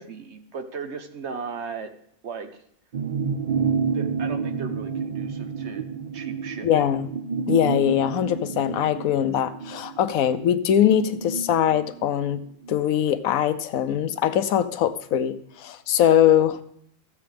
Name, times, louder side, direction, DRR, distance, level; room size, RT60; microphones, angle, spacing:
voice 1, 0.0-1.9 2.2-2.6 3.9-5.8 6.1-6.9, right 5 dB, 55° right, 7 dB, 1.2 m, -36 dB
sound 1, 2.9-12.8 13.1-13.2, right 5 dB, 70° right, 0.4 m, -30 dB
voice 2, 6.6-7.1 7.5-16.6, left 10 dB, 85° left, 12 dB, 1.1 m, -22 dB
14.5 x 7.7 x 3.5 m, 0.69 s
omnidirectional pair, 1.4 m